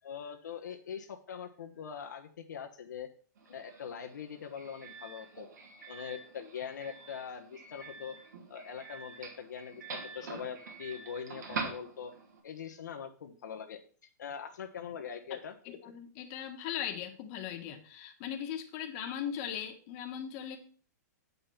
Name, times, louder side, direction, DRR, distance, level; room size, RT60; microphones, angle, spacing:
voice 1, 0.0-3.1 3.5-5.5 5.9-8.1 8.5-12.1 12.4-13.8 14.2-15.5, left 7 dB, 80° left, 5 dB, 1.1 m, -42 dB
Doorbell, 3.4-12.4, right 4 dB, 80° right, 2.7 m, -45 dB
voice 2, 15.6-20.6, left 9 dB, 35° left, 4 dB, 1.5 m, -39 dB
8.5 x 5.4 x 5.8 m, 0.44 s
hypercardioid pair, 150°, 10 cm